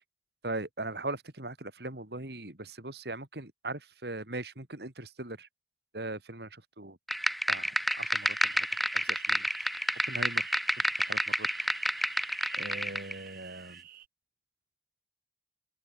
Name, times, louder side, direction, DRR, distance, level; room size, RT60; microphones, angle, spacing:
voice 1, 0.4-5.5 5.9-7.0 7.5-8.7 8.9-9.8 10.0-11.5 12.5-13.8, right 2 dB, 70° right, 3.0 m, -40 dB
sound 1, 7.1-13.1, equal, ahead, 0.9 m, -30 dB
sound 2, 8.1-14.1, right 11 dB, 50° right, 2.6 m, -51 dB
open air
head